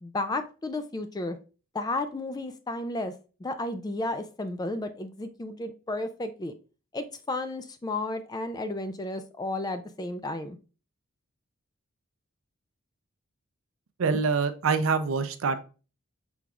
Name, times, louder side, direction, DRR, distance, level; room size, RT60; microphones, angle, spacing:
voice 1, 0.0-1.4 1.7-3.1 3.4-6.5 6.9-10.6, left 2 dB, 20° left, 10 dB, 0.3 m, -33 dB
voice 2, 14.0-15.6, right 5 dB, 70° right, 10 dB, 0.5 m, -25 dB
5.9 x 3.5 x 2.4 m, 0.35 s
head